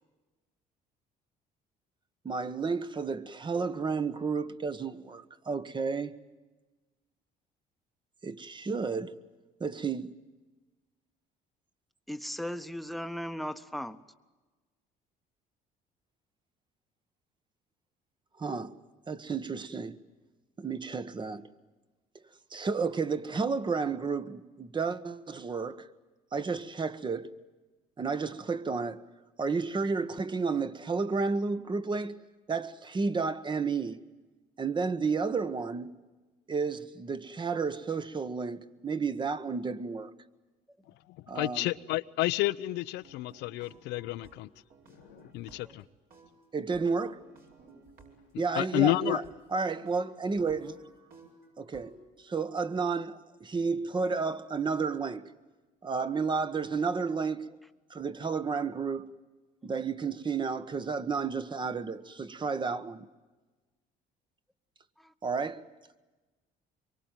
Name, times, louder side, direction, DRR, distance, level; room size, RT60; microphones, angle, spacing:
voice 1, 2.2-6.2 8.2-9.2 9.6-10.2 18.4-18.7 19.1-20.0 20.6-21.5 22.5-25.9 26.3-27.3 28.0-29.0 29.4-32.2 32.5-34.0 34.6-36.0 36.5-40.1 41.3-41.7 46.5-47.2 48.4-49.2 49.5-50.8 51.6-51.9 52.2-55.3 55.8-57.5 57.9-59.1 59.6-63.1 65.2-65.6, right 4 dB, 25° right, 1.3 m, -32 dB
voice 2, 12.1-14.0 45.6-45.7 65.0-65.1, equal, ahead, 1.2 m, -37 dB
voice 3, 41.3-44.5 45.0-45.8 48.5-49.2, left 17 dB, 90° left, 0.8 m, -30 dB
sound 1, 43.0-45.8 46.1-48.7 49.2-49.3 49.9-50.0 50.4-52.0, right 3 dB, 60° right, 6.7 m, -57 dB
25.0 x 23.5 x 9.1 m
cardioid pair, 110°, 17 cm